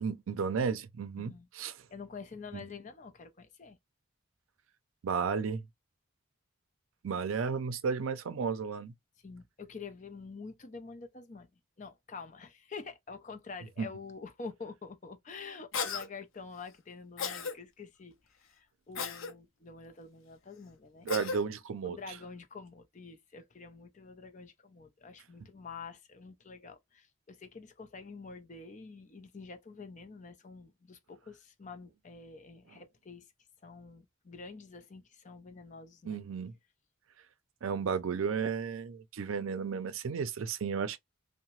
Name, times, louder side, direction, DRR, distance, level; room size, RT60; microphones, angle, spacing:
voice 1, 0.0-1.7 2.5-2.6 5.0-5.6 7.0-8.9 13.8-13.9 21.0-22.0 36.1-36.5 37.6-41.0, right 6 dB, 85° right, 0.4 m, -33 dB
voice 2, 1.2-1.5 1.9-3.8 9.2-21.1 21.8-33.3 33.6-36.2, left 4 dB, 35° left, 0.5 m, -47 dB
Cough, 15.7-16.1 17.2-17.5 19.0-19.3 21.1-21.4, left 5 dB, 80° left, 0.6 m, -35 dB
2.8 x 2.1 x 2.9 m
head